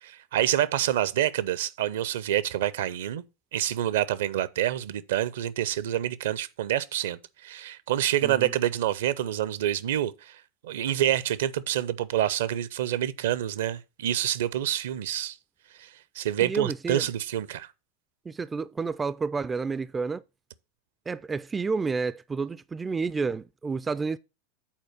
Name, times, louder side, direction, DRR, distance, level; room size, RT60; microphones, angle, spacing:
voice 1, 0.0-3.2 3.5-15.4 15.8-15.9 16.2-17.7, right 12 dB, 65° right, 0.6 m, -27 dB
voice 2, 16.4-17.1 18.3-20.2 21.1-24.2, right 4 dB, 15° right, 0.3 m, -30 dB
7.3 x 4.4 x 6.5 m
figure-of-eight pair, 85°, 0 cm